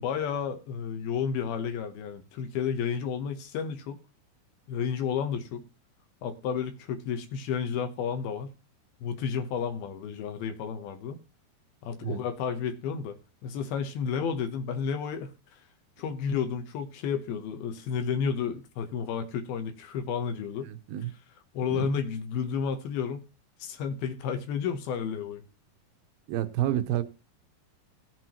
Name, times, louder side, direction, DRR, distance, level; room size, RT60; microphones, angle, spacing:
voice 1, 0.0-4.0 4.7-5.6 6.2-8.5 9.0-11.2 11.8-13.2 13.4-15.3 16.0-20.7 21.5-23.3 23.6-25.4, left 7 dB, 80° left, 2.7 m, -31 dB
voice 2, 20.7-21.1 21.7-21.9 26.3-27.0, right 12 dB, 80° right, 2.4 m, -29 dB
18.0 x 7.6 x 2.9 m
omnidirectional pair, 4.4 m